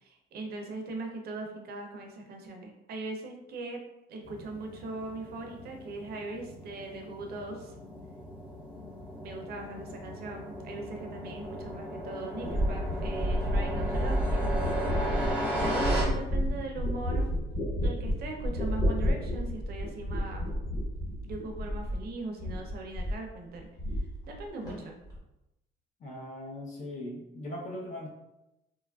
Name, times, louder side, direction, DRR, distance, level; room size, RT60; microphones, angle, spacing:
voice 1, 0.0-3.8 4.1-7.7 9.2-14.5 15.6-17.3 17.8-20.5 21.2-23.7 24.2-25.0, right 2 dB, 55° right, 2 dB, 0.5 m, -40 dB
sound 1, 4.2-16.0, equal, 5° right, 0.8 m, -36 dB
sound 2, 12.4-22.1 22.4-23.3 23.6-24.4 24.7-25.2, equal, 20° left, 1.1 m, -31 dB
voice 2, 26.0-28.1, left 1 dB, 40° left, -1 dB, 0.6 m, -39 dB
2.9 x 2.3 x 2.3 m, 0.92 s
cardioid pair, 155°, 20 cm